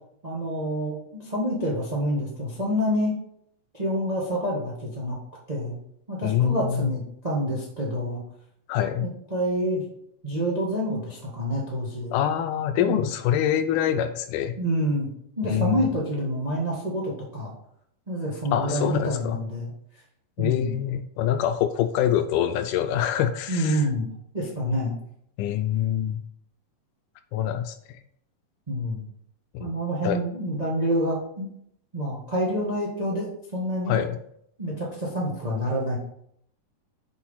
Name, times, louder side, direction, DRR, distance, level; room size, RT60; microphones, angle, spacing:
voice 1, 0.2-3.1 3.7-5.2 5.5-5.8 6.1-8.2 9.0-9.8 10.2-12.1 12.8-13.1 14.6-15.1 15.4-17.5 18.1-19.7 20.4-20.7 23.5-24.0 24.3-25.0 28.7-29.0 29.6-31.5 31.9-33.9 34.6-36.0, equal, 60° right, -4 dB, 0.4 m, -27 dB
voice 2, 6.2-6.9 8.7-9.1 12.1-14.6 15.4-15.8 18.5-19.4 20.4-23.9 25.4-26.2 27.3-27.8 29.5-29.7 30.0-30.2 33.9-34.2, left 10 dB, 80° left, 9 dB, 2.0 m, -25 dB
7.3 x 4.6 x 5.6 m, 0.70 s
omnidirectional pair, 3.9 m